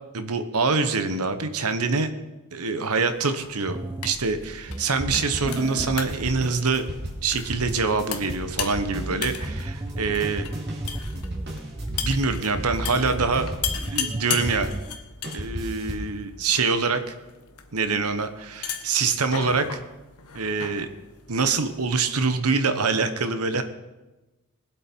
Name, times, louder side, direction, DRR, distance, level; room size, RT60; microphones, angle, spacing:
voice 1, 0.1-2.1 2.5-6.8 7.2-10.5 11.1-11.2 11.9-13.5 13.7-14.7 15.3-17.1 17.7-19.8 20.3-20.9 21.3-23.6, right 4 dB, 80° right, 9 dB, 1.1 m, -25 dB
sound 1, 3.1-22.0, left 8 dB, 85° left, 1.3 m, -37 dB
sound 2, 3.7-15.0, right 1 dB, 15° right, 0.4 m, -36 dB
sound 3, 4.7-14.8 15.2-16.1, equal, 50° right, 2.5 m, -35 dB
21.0 x 8.0 x 4.6 m, 1.1 s
head